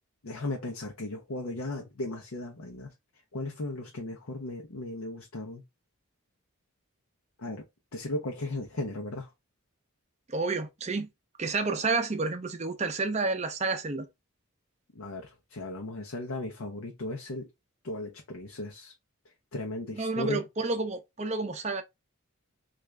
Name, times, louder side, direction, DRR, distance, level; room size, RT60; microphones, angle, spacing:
voice 1, 0.2-2.9 3.3-5.6 7.4-7.6 7.9-9.3 14.9-17.5 17.8-18.9 19.5-20.4, left 2 dB, 75° left, 0.7 m, -36 dB
voice 2, 10.3-11.1 11.4-14.1 19.9-21.8, right 3 dB, 30° right, 0.5 m, -30 dB
3.5 x 2.5 x 3.2 m
head